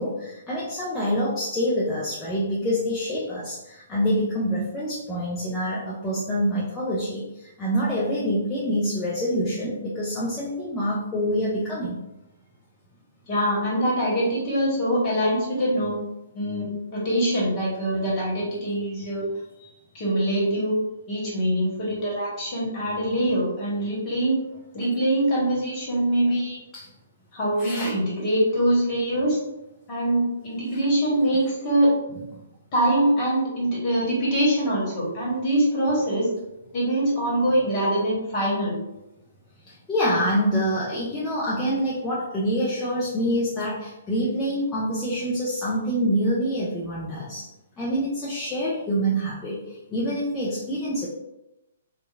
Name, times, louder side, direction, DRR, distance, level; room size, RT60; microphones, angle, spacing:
voice 1, 0.0-12.0 19.6-19.7 26.7-26.9 27.6-27.9 39.7-47.4 47.8-51.1, equal, 15° left, -7 dB, 0.5 m, -26 dB
voice 2, 13.3-15.9 16.3-16.7 16.9-19.2 19.9-20.8 21.1-24.4 24.7-26.6 27.3-29.4 29.9-31.9 32.7-36.3 36.7-38.8, right 1 dB, 30° left, -6 dB, 1.2 m, -23 dB
2.8 x 2.2 x 2.3 m, 0.91 s
figure-of-eight pair, 125°, 0 cm